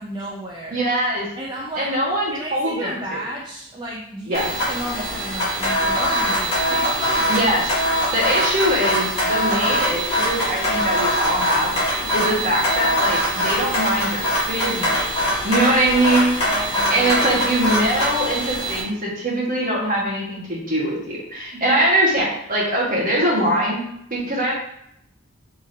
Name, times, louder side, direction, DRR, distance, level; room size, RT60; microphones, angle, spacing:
voice 1, 0.0-0.9 1.4-1.9 2.3-7.0 15.9-17.4, right 1 dB, 20° right, -3 dB, 0.4 m, -33 dB
voice 2, 0.7-1.3 1.8-2.9 4.3-4.5 7.3-7.8 8.1-11.8 12.1-15.0 15.4-16.3 16.9-23.8 24.1-24.5, right 1 dB, 40° right, -4 dB, 1.4 m, -22 dB
sound 1, 4.3-18.8, equal, 30° left, 1.5 m, -22 dB
4.8 x 3.7 x 2.7 m, 0.74 s
head